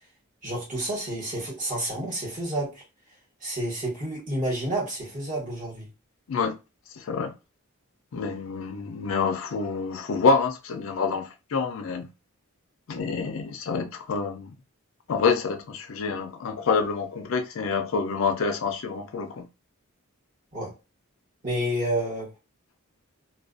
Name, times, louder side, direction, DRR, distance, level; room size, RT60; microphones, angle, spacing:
voice 1, 0.4-2.8 3.4-5.9 20.5-20.7 21.4-22.3, right 1 dB, 35° right, 1.1 m, -30 dB
voice 2, 7.0-7.3 8.1-12.1 12.9-14.5 15.1-19.5, left 4 dB, 65° left, 0.4 m, -27 dB
2.4 x 2.2 x 2.4 m
head